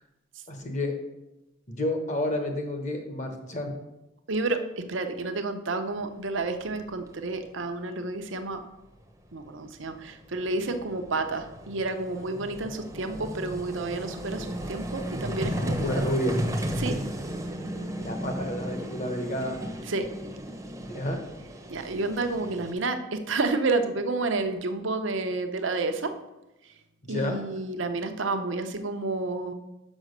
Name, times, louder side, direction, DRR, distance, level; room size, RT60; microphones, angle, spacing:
voice 1, 0.5-0.9 1.7-3.8 15.8-16.4 18.0-19.6 20.8-21.2 27.0-27.4, left 1 dB, 35° left, 5 dB, 1.2 m, -30 dB
voice 2, 4.3-8.6 9.3-16.0 16.8-17.0 19.9-20.1 21.7-26.1 27.1-29.5, right 3 dB, 70° right, 7 dB, 0.8 m, -30 dB
Vehicle, 6.6-6.7 6.9-7.1 9.1-9.2 9.4-22.7, equal, 15° right, 0.8 m, -35 dB
6.3 x 5.7 x 6.5 m, 0.96 s
head